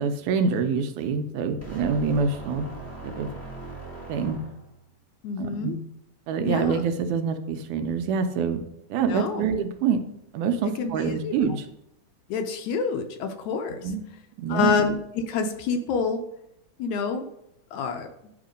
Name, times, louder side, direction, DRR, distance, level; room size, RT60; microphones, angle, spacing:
voice 1, 0.0-2.7 3.0-3.3 4.1-4.4 5.4-5.8 6.3-8.6 8.9-10.0 10.3-11.7 13.8-14.0 14.4-14.7, right 5 dB, 80° right, 7 dB, 2.0 m, -26 dB
sound 1, 1.6-4.9, right 2 dB, 10° left, 1.0 m, -40 dB
voice 2, 5.2-5.8 6.4-6.8 9.1-9.5 10.8-11.3 12.3-13.8 14.5-15.0 15.3-16.2 16.8-17.2 17.7-18.1, left 5 dB, 75° left, 5 dB, 1.9 m, -27 dB
10.5 x 3.6 x 5.1 m, 0.81 s
omnidirectional pair, 3.7 m